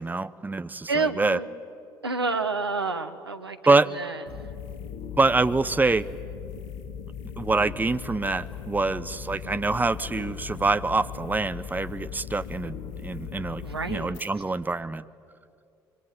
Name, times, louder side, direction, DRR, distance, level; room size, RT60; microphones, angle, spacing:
voice 1, 0.0-1.4 3.7-3.9 5.2-6.1 7.4-12.8 13.0-13.6 13.9-15.0, right 3 dB, 15° right, 14 dB, 0.8 m, -25 dB
voice 2, 0.9-1.5 2.0-4.2 13.6-14.2, right 3 dB, 85° right, 8 dB, 1.0 m, -29 dB
sound 1, 4.3-14.3, left 7 dB, 60° left, 1.6 m, -38 dB
25.5 x 23.5 x 8.9 m, 2.5 s
figure-of-eight pair, 55°, 13 cm